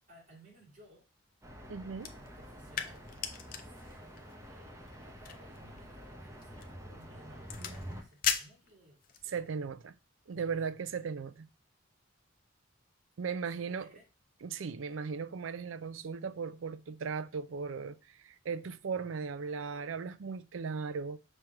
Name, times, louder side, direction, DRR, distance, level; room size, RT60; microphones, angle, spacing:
voice 1, 0.1-1.1 2.1-3.1 3.6-9.4 13.5-14.0, right 1 dB, 40° right, 2.2 m, -59 dB
sound 1, 1.4-8.0, equal, 15° right, 0.9 m, -48 dB
voice 2, 1.7-2.1 9.3-9.9 10.3-11.5 13.2-13.9 14.4-21.2, right 5 dB, 80° right, 0.5 m, -37 dB
sound 2, 1.9-9.3, left 8 dB, 45° left, 0.7 m, -40 dB
5.9 x 3.3 x 5.8 m
head